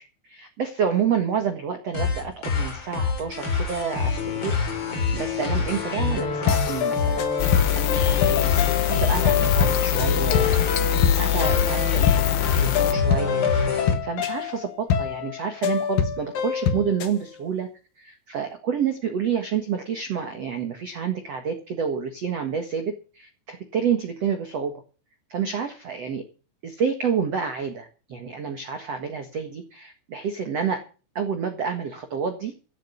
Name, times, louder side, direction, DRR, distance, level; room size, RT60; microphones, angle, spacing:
voice 1, 0.0-4.6 5.1-7.3 7.7-8.5 8.9-13.4 14.0-17.7 18.0-24.8 25.3-26.2 26.6-30.8 31.1-32.5, right 7 dB, 70° right, 6 dB, 1.5 m, -29 dB
sound 1, 1.9-13.9, left 4 dB, 30° left, 3.1 m, -26 dB
sound 2, 6.5-17.2, left 6 dB, 65° left, 2.5 m, -26 dB
sound 3, 7.4-13.0, left 17 dB, 80° left, 2.9 m, -24 dB
15.5 x 8.0 x 7.2 m, 0.36 s
omnidirectional pair, 5.6 m